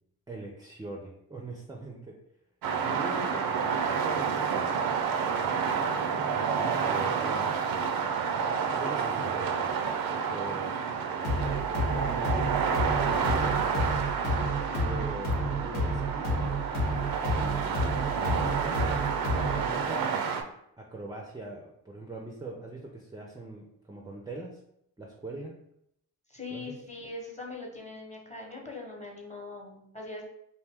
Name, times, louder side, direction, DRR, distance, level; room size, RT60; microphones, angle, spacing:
voice 1, 0.3-2.1 2.8-3.5 3.9-4.9 5.4-6.0 6.3-7.6 8.7-9.6 10.1-10.7 11.4-11.7 12.0-12.7 13.0-14.0 14.5-16.6 17.3-18.9 19.5-20.3 20.8-24.6 25.0-25.6 26.5-26.7, right 2 dB, 10° right, 0 dB, 0.5 m, -42 dB
sound 1, 2.6-20.4, right 6 dB, 60° right, 0.5 m, -29 dB
sound 2, 11.2-19.7, right 1 dB, 70° left, 0.9 m, -30 dB
voice 2, 26.3-30.2, left 3 dB, 15° left, -1 dB, 1.0 m, -41 dB
2.7 x 2.1 x 3.5 m, 0.75 s
hypercardioid pair, 40°, 41 cm